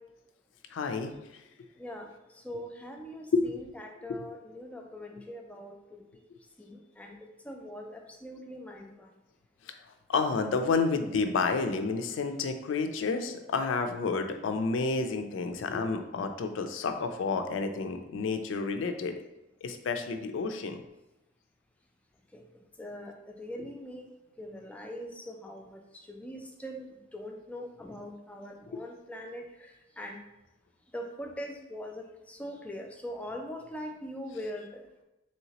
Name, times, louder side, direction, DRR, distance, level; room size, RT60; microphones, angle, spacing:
voice 1, 0.7-1.1 3.3-3.5 4.2-4.3 9.7-9.8 10.1-19.2 19.6-20.8 28.7-28.8, left 4 dB, 90° left, 6 dB, 0.4 m, -30 dB
voice 2, 1.8-6.0 6.6-7.2 7.4-9.1 22.3-22.4 22.8-24.0 24.4-25.8 26.1-30.2 30.9-34.9, equal, 5° left, 2 dB, 0.3 m, -42 dB
3.1 x 2.8 x 2.8 m, 0.95 s
head